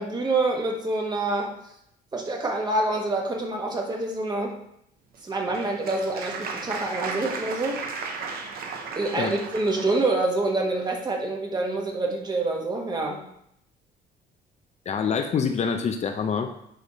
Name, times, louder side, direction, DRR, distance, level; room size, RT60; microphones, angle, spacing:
voice 1, 0.0-1.5 2.1-4.6 5.2-7.8 8.9-13.2, right 2 dB, 25° right, 1 dB, 1.5 m, -26 dB
Applause, 5.1-10.0, right 5 dB, 65° right, 1.1 m, -35 dB
voice 2, 14.9-16.5, left 6 dB, 40° left, 6 dB, 0.6 m, -26 dB
10.5 x 3.5 x 4.2 m, 0.76 s
cardioid pair, 110°, 17 cm